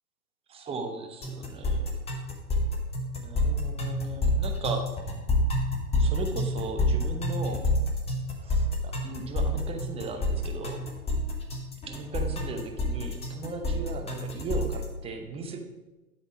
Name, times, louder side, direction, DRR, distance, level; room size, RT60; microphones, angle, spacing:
voice 1, 0.5-1.8 3.2-4.9 6.0-7.7 8.4-10.8 11.9-15.6, right 3 dB, 10° right, 4 dB, 0.8 m, -37 dB
sound 1, 1.2-14.8, left 1 dB, 15° left, 1.2 m, -28 dB
11.5 x 4.0 x 6.0 m, 1.1 s
figure-of-eight pair, 105°, 47 cm